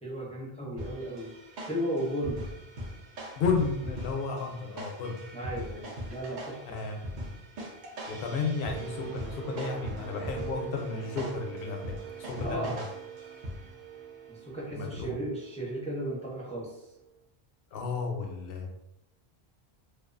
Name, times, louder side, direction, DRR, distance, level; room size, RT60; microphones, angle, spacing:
voice 1, 0.0-1.3 1.7-2.4 5.3-6.8 12.4-12.8 14.3-16.8, right 1 dB, 10° left, -5 dB, 0.4 m, -35 dB
sound 1, 0.8-13.9, equal, 55° right, 0.6 m, -41 dB
voice 2, 3.4-5.2 6.7-7.0 8.1-12.9 14.7-15.2 17.7-18.7, left 4 dB, 70° left, 2 dB, 0.7 m, -33 dB
sound 2, 8.6-16.4 16.9-17.1, right 9 dB, 90° right, 0.9 m, -44 dB
2.4 x 2.3 x 2.4 m, 0.85 s
omnidirectional pair, 1.0 m